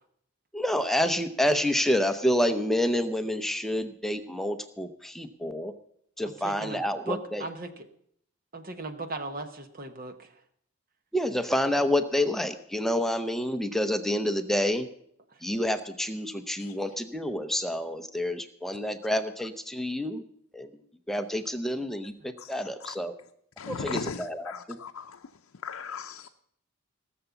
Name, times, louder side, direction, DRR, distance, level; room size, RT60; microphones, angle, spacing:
voice 1, 0.5-5.7 6.2-7.4 11.1-14.9 15.4-20.2 20.5-20.7 21.1-23.2 23.7-24.8, left 1 dB, ahead, 8 dB, 0.6 m, -28 dB
voice 2, 6.4-7.9 8.5-10.3, right 2 dB, 40° right, 8 dB, 1.1 m, -37 dB
voice 3, 22.4-22.9 23.6-25.2 25.6-26.3, left 5 dB, 75° left, 4 dB, 0.6 m, -38 dB
18.0 x 6.8 x 7.0 m, 0.70 s
head